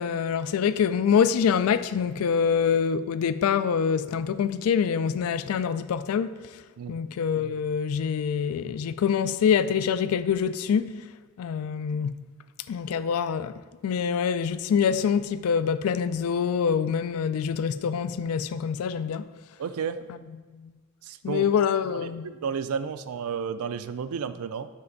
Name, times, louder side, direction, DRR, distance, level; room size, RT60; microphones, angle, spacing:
voice 1, 0.0-6.3 6.9-11.0 11.4-12.2 12.7-13.5 13.8-19.3 20.6-20.7 21.2-22.3, left 7 dB, 85° left, 0.3 m, -25 dB
voice 2, 19.6-20.0 21.0-21.5 21.9-24.7, right 6 dB, 90° right, 0.4 m, -32 dB
5.8 x 5.5 x 3.9 m
head